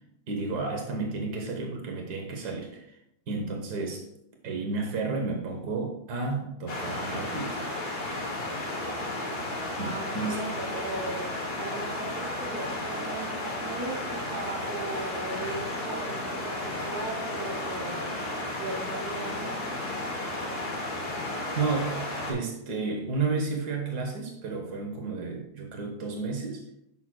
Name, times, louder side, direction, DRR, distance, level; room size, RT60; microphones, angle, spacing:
voice 1, 0.3-3.0 3.3-4.1 4.4-7.6 9.8-10.4 21.5-26.6, right 4 dB, 90° right, 2 dB, 1.5 m, -32 dB
sound 1, 6.7-22.3, left 1 dB, 80° left, 2.1 m, -33 dB
voice 2, 9.8-18.2 18.6-19.8, right 2 dB, 70° right, -2 dB, 1.9 m, -38 dB
9.7 x 6.0 x 2.2 m, 0.77 s
omnidirectional pair, 1.7 m